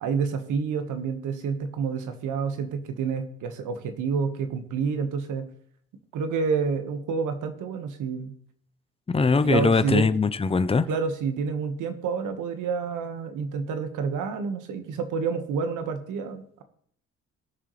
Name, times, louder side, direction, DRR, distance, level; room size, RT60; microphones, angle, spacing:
voice 1, 0.0-5.4 6.1-8.3 9.4-10.1 10.9-16.6, right 5 dB, 85° right, 1.5 m, -28 dB
voice 2, 9.1-10.9, left 4 dB, 20° left, 0.6 m, -21 dB
19.5 x 6.6 x 3.2 m
cardioid pair, 90°, 30 cm